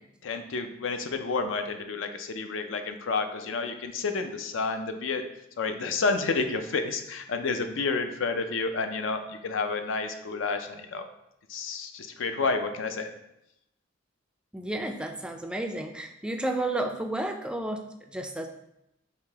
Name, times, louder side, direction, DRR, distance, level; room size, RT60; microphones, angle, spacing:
voice 1, 0.2-5.2 5.6-11.1 11.5-13.1, left 4 dB, 75° left, 7 dB, 0.4 m, -30 dB
voice 2, 14.5-18.5, right 1 dB, 5° right, 5 dB, 0.3 m, -32 dB
4.9 x 2.7 x 3.4 m, 0.84 s
head